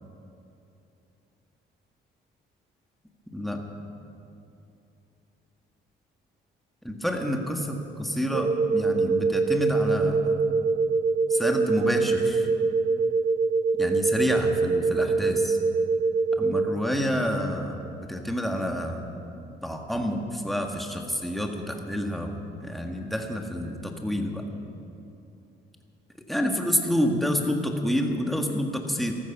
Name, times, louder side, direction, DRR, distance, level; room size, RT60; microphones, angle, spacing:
voice 1, 6.8-10.4 11.3-12.5 13.8-15.6 16.4-17.8 18.1-19.1 19.6-24.4 26.3-29.1, equal, ahead, 2 dB, 1.8 m, -28 dB
sound 1, 8.3-16.7, right 4 dB, 50° right, 1.6 m, -24 dB
14.5 x 14.0 x 6.1 m, 2.8 s
cardioid pair, 90°, 20 cm